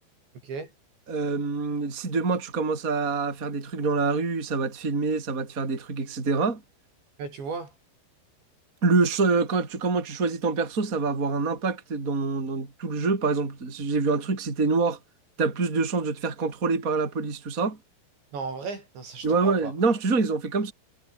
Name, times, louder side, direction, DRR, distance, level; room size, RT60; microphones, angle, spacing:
voice 1, 1.1-6.6 8.8-15.0 15.4-17.8 19.2-20.7, right 4 dB, 20° right, 3.9 m, -26 dB
voice 2, 7.2-7.7 18.3-19.7, right 4 dB, 75° right, 9.8 m, -35 dB
omnidirectional pair, 5.2 m